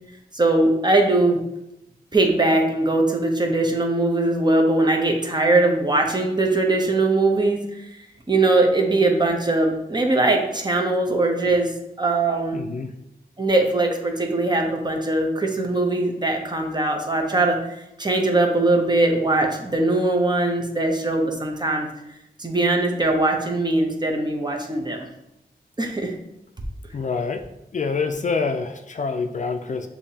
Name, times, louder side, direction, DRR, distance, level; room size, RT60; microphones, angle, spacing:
voice 1, 0.3-1.4 2.1-7.9 8.3-11.7 12.0-12.6 13.4-21.9 22.4-25.1 25.8-26.1, right 2 dB, 25° right, 2 dB, 0.8 m, -21 dB
voice 2, 12.5-12.9 26.9-27.4 27.7-29.9, left 4 dB, 50° left, 6 dB, 0.4 m, -26 dB
6.6 x 2.7 x 2.8 m, 0.86 s
cardioid pair, 60°, 16 cm